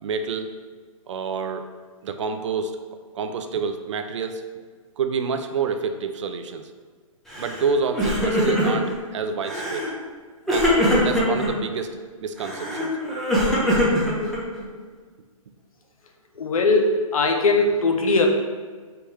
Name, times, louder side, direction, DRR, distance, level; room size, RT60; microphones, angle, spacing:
voice 1, 0.0-0.5 1.1-1.7 2.0-2.8 3.1-4.4 5.0-6.7 7.4-9.9 10.5-10.7 11.0-12.9, right 5 dB, 55° right, 7 dB, 0.4 m, -28 dB
Crying sobbing, 7.3-7.6 7.9-8.9 9.4-9.9 10.5-11.5 12.4-14.6, equal, ahead, 0.5 m, -22 dB
voice 2, 16.4-18.3, left 3 dB, 75° left, 3 dB, 0.8 m, -20 dB
3.5 x 2.9 x 4.7 m, 1.5 s
hypercardioid pair, 160°, 18 cm